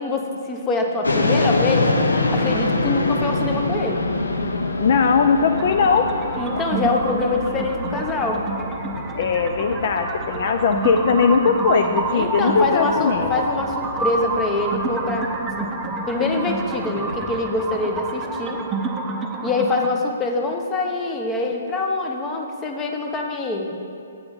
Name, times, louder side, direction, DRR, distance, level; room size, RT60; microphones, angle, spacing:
voice 1, 0.0-4.0 6.4-8.4 12.1-15.3 15.6-15.8 16.1-18.6 19.4-23.8, left 3 dB, 20° left, 2 dB, 0.9 m, -24 dB
sound 1, 1.0-17.3, left 2 dB, 85° left, 0.8 m, -26 dB
voice 2, 4.8-6.1 9.1-13.4, left 5 dB, 55° left, 6 dB, 0.4 m, -19 dB
sound 2, 5.6-19.9, right 3 dB, 15° right, 0.6 m, -28 dB
8.0 x 6.7 x 5.4 m, 2.6 s
figure-of-eight pair, 130°, 0 cm